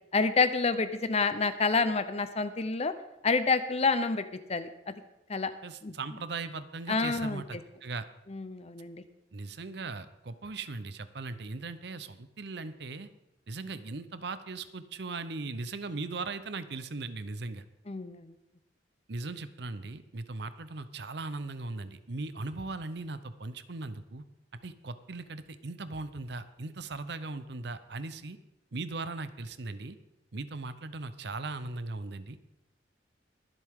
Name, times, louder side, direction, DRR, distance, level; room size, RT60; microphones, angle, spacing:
voice 1, 0.1-2.9 3.2-4.9 5.3-5.5 5.8-5.9 6.9-7.4 8.3-9.0 17.9-18.3, left 4 dB, 35° left, 11 dB, 0.7 m, -28 dB
voice 2, 5.6-8.1 9.3-13.1 13.5-17.7 19.1-24.2 24.6-28.4 28.7-30.0 30.3-32.4, right 3 dB, 65° right, 12 dB, 0.8 m, -38 dB
23.0 x 8.0 x 3.7 m, 0.93 s
head